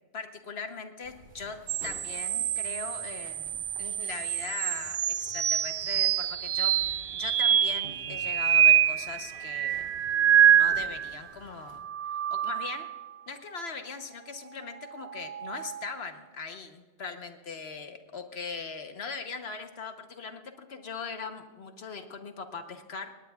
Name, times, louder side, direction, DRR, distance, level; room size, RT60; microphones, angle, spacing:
voice 1, 0.1-9.8 10.4-11.9 12.3-12.9 13.3-23.1, left 5 dB, 70° left, 7 dB, 1.4 m, -40 dB
sound 1, 1.0-11.8, right 2 dB, 60° right, 3.1 m, -53 dB
sound 2, 1.7-11.2 11.7-13.1 14.9-16.0, right 10 dB, 80° right, 0.9 m, -26 dB
19.0 x 18.5 x 2.4 m, 1.3 s
omnidirectional pair, 1.1 m